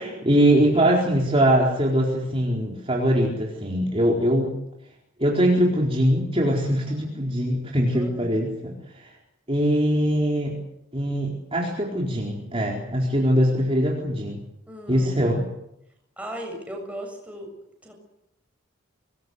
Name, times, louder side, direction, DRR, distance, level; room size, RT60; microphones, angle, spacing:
voice 1, 0.0-4.5 5.2-9.1 9.5-10.6 10.9-14.4 14.9-15.4, equal, 30° right, -2 dB, 4.4 m, -22 dB
voice 2, 6.8-7.2 7.9-8.4 14.7-15.1 16.2-17.5 17.8-17.9, right 1 dB, 5° right, 2 dB, 7.4 m, -37 dB
26.0 x 21.5 x 8.2 m, 0.81 s
head